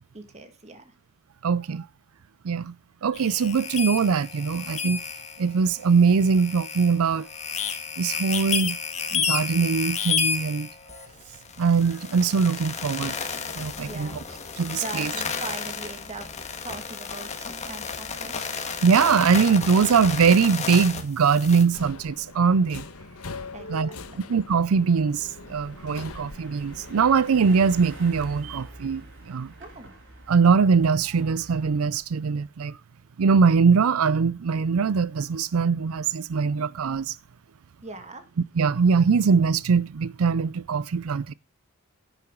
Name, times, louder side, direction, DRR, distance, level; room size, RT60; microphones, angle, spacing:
voice 1, 0.1-0.9 13.9-14.2 14.8-16.3 16.6-18.4 23.5-24.3 29.6-29.9 37.8-38.2, right 3 dB, 30° right, 2.0 m, -40 dB
voice 2, 1.4-1.9 2.4-2.7 3.0-5.0 5.4-7.3 8.0-8.8 9.1-10.7 11.6-13.3 13.6-14.2 14.6-15.1 18.8-22.8 23.7-23.9 24.3-29.5 30.3-32.8 33.2-37.2 38.6-41.3, right 5 dB, 80° right, 0.5 m, -22 dB
sound 1, 3.1-21.6, left 6 dB, 30° left, 1.8 m, -32 dB
Subway metro underground, 21.7-28.3, left 3 dB, 85° left, 1.3 m, -42 dB
sound 2, 25.2-31.8, right 1 dB, 60° right, 5.5 m, -46 dB
10.5 x 9.0 x 3.8 m
head